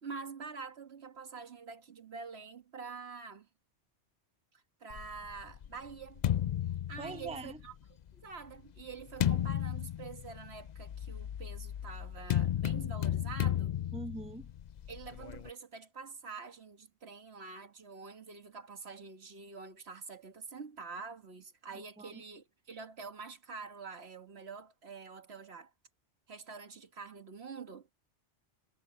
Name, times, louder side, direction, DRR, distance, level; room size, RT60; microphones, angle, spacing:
voice 1, 0.0-3.5 4.8-6.2 6.9-7.7 8.1-13.8 14.9-25.7 26.3-27.9, right 5 dB, 65° right, 1.7 m, -46 dB
sound 1, 4.9-7.7 8.4-15.5, left 11 dB, 60° left, 0.4 m, -34 dB
voice 2, 7.0-7.6 13.9-14.5 21.7-22.2, right 2 dB, 5° right, 0.9 m, -43 dB
omnidirectional pair, 1.2 m